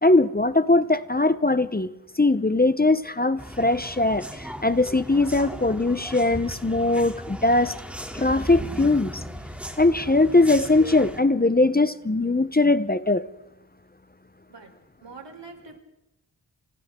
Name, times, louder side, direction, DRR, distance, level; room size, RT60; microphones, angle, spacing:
voice 1, 0.0-1.9 2.2-7.7 8.1-9.2 9.8-13.3, left 2 dB, 20° left, 13 dB, 0.8 m, -21 dB
sound 1, 3.4-11.2, equal, 5° right, 2.9 m, -37 dB
voice 2, 15.0-15.8, right 4 dB, 80° right, 4 dB, 4.0 m, -43 dB
29.5 x 28.0 x 3.7 m, 0.89 s
wide cardioid pair, 65°, 42 cm